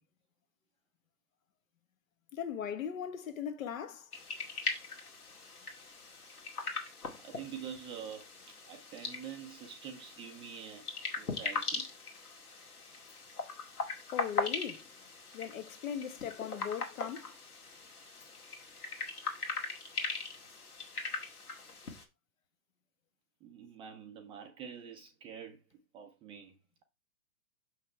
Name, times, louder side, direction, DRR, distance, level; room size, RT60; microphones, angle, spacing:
voice 1, 2.3-4.1 14.1-14.8 15.3-17.4, left 8 dB, 65° left, 1.3 m, -38 dB
sound 1, 4.1-22.0, left 4 dB, 85° left, 2.2 m, -40 dB
voice 2, 7.2-10.9 11.2-11.9 23.4-25.6 25.9-26.5, right 8 dB, 10° right, 0.5 m, -46 dB
6.5 x 5.5 x 3.3 m
hypercardioid pair, 125°, 44 cm